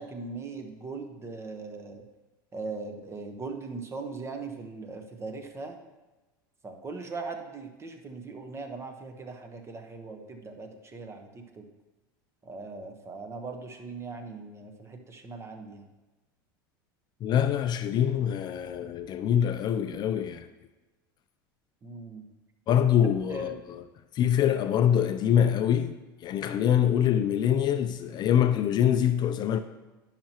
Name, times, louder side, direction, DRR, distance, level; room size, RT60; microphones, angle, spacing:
voice 1, 0.0-2.0 2.5-5.8 6.6-11.6 12.4-15.9 21.8-22.3 23.3-23.6, right 4 dB, 25° right, 1.0 m, -40 dB
voice 2, 17.2-20.5 22.7-23.8 24.1-25.9 26.2-29.6, left 9 dB, 40° left, 0.4 m, -24 dB
10.5 x 5.7 x 2.9 m
hypercardioid pair, 100°, 11 cm